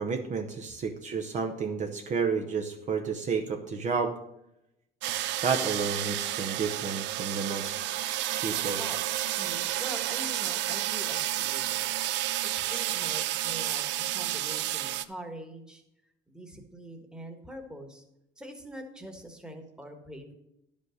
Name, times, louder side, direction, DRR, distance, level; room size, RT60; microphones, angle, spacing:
voice 1, 0.0-4.2 5.4-7.8 8.4-8.8, right 5 dB, 40° right, 4 dB, 0.8 m, -31 dB
sound 1, 5.0-15.1, right 14 dB, 65° right, 0.5 m, -31 dB
voice 2, 9.4-11.9 12.4-15.8 16.3-18.0 18.4-20.3, right 1 dB, 5° right, 4 dB, 1.4 m, -44 dB
11.0 x 5.3 x 6.4 m, 0.86 s
cardioid pair, 125°, 20 cm